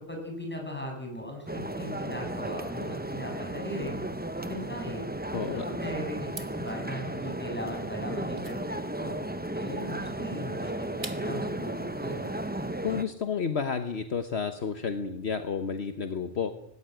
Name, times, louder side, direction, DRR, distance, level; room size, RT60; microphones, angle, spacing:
voice 1, 0.1-4.0 4.4-5.0 5.7-9.1 9.5-12.3, equal, 10° left, 1 dB, 7.0 m, -38 dB
sound 1, 1.5-13.0, right 1 dB, 10° right, 0.8 m, -35 dB
voice 2, 5.3-5.6 12.8-16.5, left 6 dB, 60° left, 8 dB, 1.4 m, -31 dB
sound 2, 6.2-11.5, right 4 dB, 65° right, 2.2 m, -47 dB
18.5 x 17.5 x 9.2 m, 0.76 s
omnidirectional pair, 1.2 m